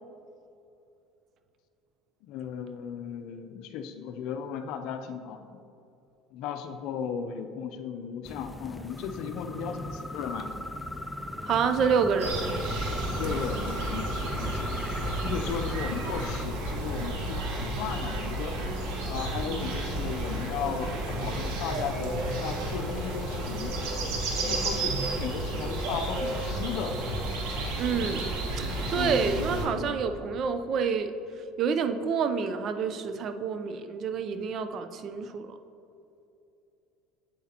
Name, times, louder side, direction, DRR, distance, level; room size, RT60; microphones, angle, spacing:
voice 1, 2.2-5.6 6.3-10.7 13.1-14.7 15.0-18.6 19.1-23.8 24.4-27.0 28.8-30.0, left 7 dB, 70° left, 8 dB, 0.5 m, -36 dB
sound 1, 8.3-16.5, left 1 dB, 5° left, 0.4 m, -38 dB
voice 2, 11.4-12.6 27.8-35.6, right 6 dB, 50° right, 9 dB, 0.5 m, -28 dB
sound 2, 12.2-29.7, right 1 dB, 75° right, 1.5 m, -32 dB
8.4 x 8.1 x 2.9 m, 2.7 s
supercardioid pair, 105°, 0 cm